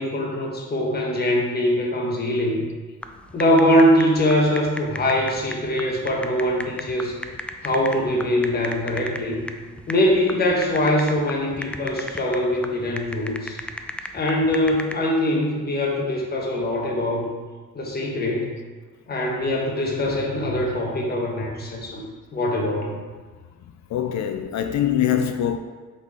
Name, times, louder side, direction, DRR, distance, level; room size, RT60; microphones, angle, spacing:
voice 1, 0.0-2.6 3.3-7.2 7.6-9.4 9.9-13.6 14.1-17.2 17.7-18.5 19.1-22.0 22.3-23.0, left 1 dB, 30° left, 1.3 m, -22 dB
sound 1, 3.0-15.0, left 1 dB, 5° left, 0.4 m, -36 dB
voice 2, 20.1-20.7 23.9-25.6, left 10 dB, 65° left, 0.5 m, -24 dB
7.8 x 4.1 x 3.7 m
cardioid pair, 90°, 30 cm